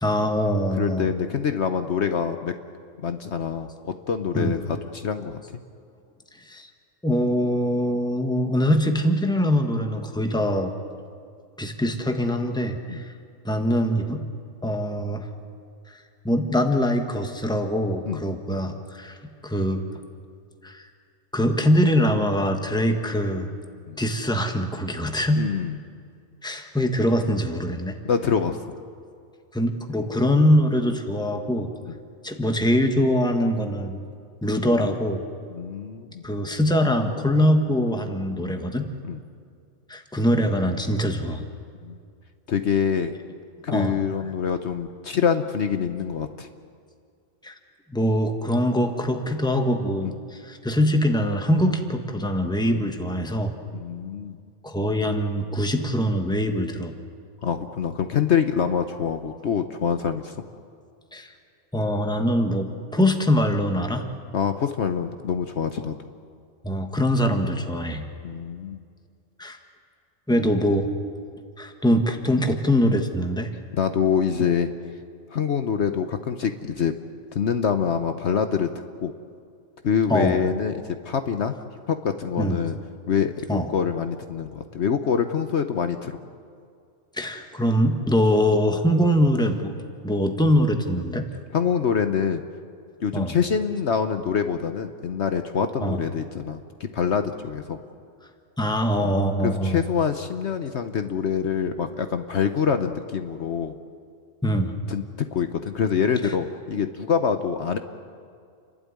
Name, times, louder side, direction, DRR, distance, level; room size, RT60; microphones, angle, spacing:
voice 1, 0.0-1.1 4.3-4.6 6.5-6.7 7.0-10.7 11.6-13.1 13.4-14.2 14.6-15.3 15.9-16.0 16.2-19.2 19.4-19.8 20.6-20.8 21.3-23.5 24.0-25.4 26.4-27.9 29.5-31.7 32.2-34.0 34.4-35.2 36.2-38.9 39.9-41.4 43.7-44.0 44.2-44.3 47.4-47.5 47.9-53.5 54.6-56.9 61.1-61.3 61.7-64.0 66.6-68.0 69.4-69.6 70.3-70.9 71.6-73.5 80.1-80.5 82.4-82.6 83.5-83.7 87.1-89.7 90.0-91.3 93.1-93.4 95.8-96.0 98.6-99.8 104.4-104.8 106.2-106.3, equal, 5° left, 5 dB, 1.4 m, -23 dB
voice 2, 0.7-2.5 3.0-5.6 12.9-13.0 18.1-18.2 23.9-24.0 25.4-25.7 28.0-28.6 31.9-32.0 35.5-36.2 39.1-39.2 41.8-42.0 42.5-43.1 43.6-46.5 50.0-50.1 52.7-52.8 53.7-54.4 57.4-60.3 64.3-66.0 68.2-68.8 73.7-74.7 75.3-76.9 77.3-78.7 79.0-79.1 79.8-81.5 81.9-82.8 83.1-86.2 91.5-92.4 93.0-96.6 96.9-97.8 99.0-99.1 99.4-103.8 104.9-105.0 105.3-107.8, left 7 dB, 60° left, 8 dB, 1.1 m, -25 dB
29.5 x 12.0 x 9.6 m, 2.3 s
omnidirectional pair, 1.4 m